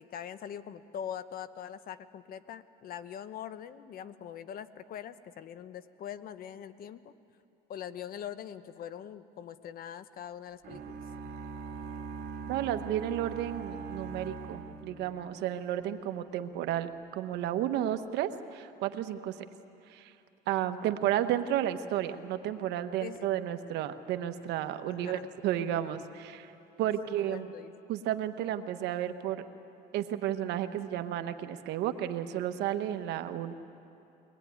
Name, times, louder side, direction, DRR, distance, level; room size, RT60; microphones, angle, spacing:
voice 1, 0.0-7.1 7.7-11.0 23.0-23.3 24.9-25.3 26.8-27.7, left 9 dB, 60° left, 13 dB, 1.0 m, -43 dB
sound 1, 10.6-15.6, right 5 dB, 65° right, 2.5 m, -41 dB
voice 2, 12.5-19.4 19.9-20.1 20.5-26.5 26.8-27.5 27.9-29.4 29.9-33.5, right 11 dB, 85° right, 9 dB, 1.1 m, -32 dB
23.0 x 20.0 x 9.5 m, 2.8 s
cardioid pair, 110°, 17 cm